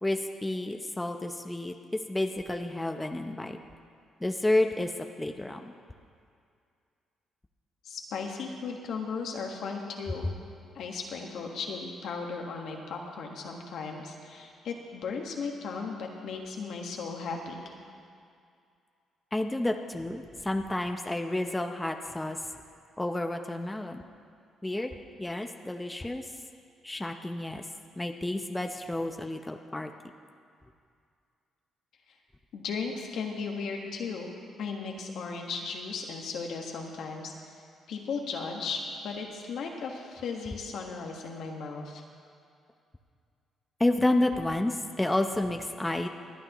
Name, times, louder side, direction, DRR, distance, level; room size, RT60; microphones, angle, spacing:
voice 1, 0.0-3.6 4.2-4.9 5.2-5.7 19.3-22.4 23.0-24.0 24.6-26.2 26.8-27.7 28.0-29.9 43.8-46.1, left 1 dB, 10° left, 5 dB, 0.7 m, -30 dB
voice 2, 7.8-10.3 10.7-17.7 32.1-32.2 32.5-34.3 34.6-37.3 37.9-42.0, left 5 dB, 75° left, 1 dB, 1.5 m, -36 dB
25.5 x 9.4 x 3.1 m, 2.3 s
cardioid pair, 90°, 0 cm